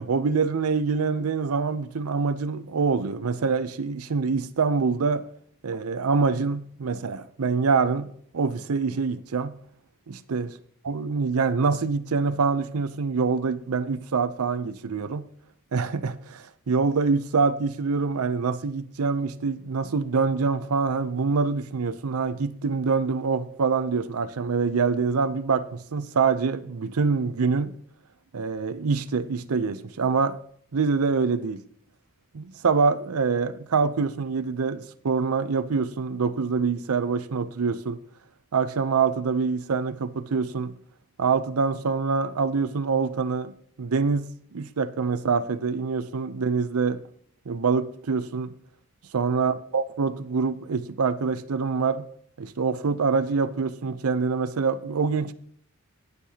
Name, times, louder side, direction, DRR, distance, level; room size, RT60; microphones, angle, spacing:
voice 1, 0.0-5.3 5.6-8.1 8.3-9.5 10.1-10.6 10.8-15.3 15.7-27.8 28.3-30.4 30.7-31.6 32.3-38.0 38.5-40.8 41.2-47.0 47.5-48.5 49.1-52.1 52.4-55.3, right 5 dB, 85° right, 0.6 m, -25 dB
19.0 x 6.7 x 2.8 m
head